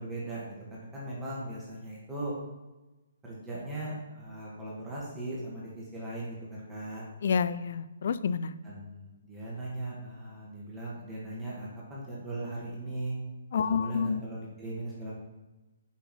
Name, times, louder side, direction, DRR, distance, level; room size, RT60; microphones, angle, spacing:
voice 1, 0.0-2.3 3.2-7.0 8.6-13.1 13.6-15.1, right 1 dB, 10° right, -6 dB, 1.8 m, -38 dB
voice 2, 7.2-8.5 13.5-14.2, left 6 dB, 55° left, 14 dB, 0.4 m, -28 dB
5.9 x 5.4 x 4.4 m, 1.1 s
figure-of-eight pair, 140°, 0 cm